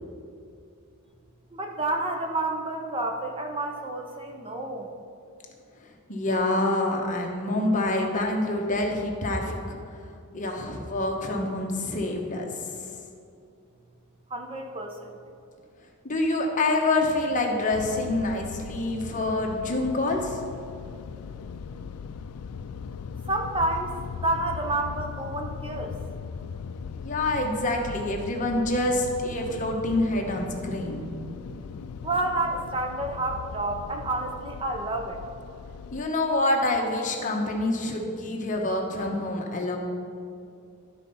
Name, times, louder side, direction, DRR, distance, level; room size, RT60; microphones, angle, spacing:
voice 1, 1.5-4.9 14.3-15.1 23.3-23.9 24.2-26.0 32.0-35.2, right 2 dB, 25° right, 3 dB, 0.6 m, -29 dB
voice 2, 6.1-9.8 10.3-12.5 16.0-20.4 27.0-31.0 35.9-39.8, left 2 dB, 35° left, 1 dB, 1.0 m, -26 dB
sound 1, 17.7-36.0, left 6 dB, 80° left, 0.4 m, -39 dB
12.0 x 4.2 x 5.5 m, 2.6 s
head